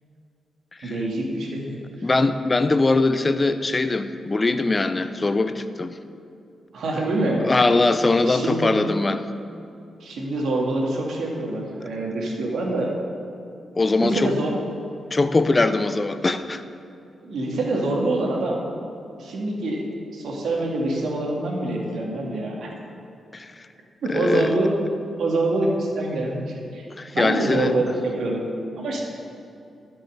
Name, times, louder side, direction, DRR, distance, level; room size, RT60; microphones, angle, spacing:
voice 1, 0.8-2.1 6.7-7.5 8.3-8.7 10.0-12.9 14.0-14.5 17.2-18.6 19.2-19.8 20.1-22.7 24.0-24.7 25.2-26.8 27.1-28.4 28.8-29.0, right 2 dB, 75° right, -1 dB, 2.0 m, -25 dB
voice 2, 2.0-6.0 7.4-9.3 13.7-14.3 15.1-16.6 23.3-23.5 24.1-24.5 27.0-27.8, left 3 dB, 30° left, 11 dB, 0.6 m, -21 dB
12.0 x 5.6 x 6.6 m, 2.6 s
cardioid pair, 75°, 0 cm